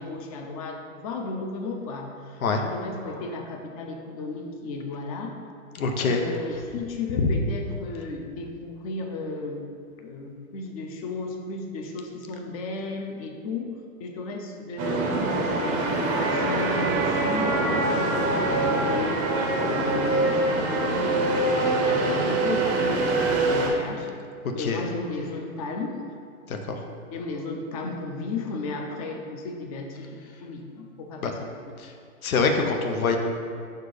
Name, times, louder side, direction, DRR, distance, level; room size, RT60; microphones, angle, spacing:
voice 1, 0.0-5.4 6.0-9.7 10.0-13.7 14.0-24.1 24.5-26.0 27.1-31.5, left 3 dB, 25° left, 3 dB, 0.5 m, -34 dB
voice 2, 5.7-6.2 7.2-7.3 24.6-24.8 26.5-26.8 31.2-31.3 31.8-31.9 32.2-33.2, left 4 dB, 90° left, 4 dB, 0.9 m, -24 dB
sound 1, 14.8-23.7, right 2 dB, 20° right, 0.6 m, -24 dB
5.2 x 4.4 x 4.8 m, 2.3 s
hypercardioid pair, 145°, 41 cm